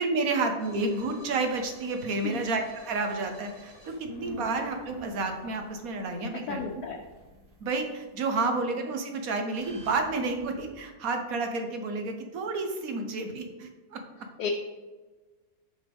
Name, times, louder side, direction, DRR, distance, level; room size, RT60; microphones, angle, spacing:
voice 1, 0.0-6.6 7.6-14.0, right 3 dB, 65° right, 5 dB, 1.3 m, -30 dB
sound 1, 0.6-8.0 9.5-10.7, equal, 45° right, 2.4 m, -52 dB
voice 2, 4.1-4.6 6.5-7.0 8.4-8.6 14.4-14.5, left 5 dB, 75° left, 0 dB, 1.2 m, -35 dB
6.9 x 6.7 x 3.5 m, 1.3 s
omnidirectional pair, 1.7 m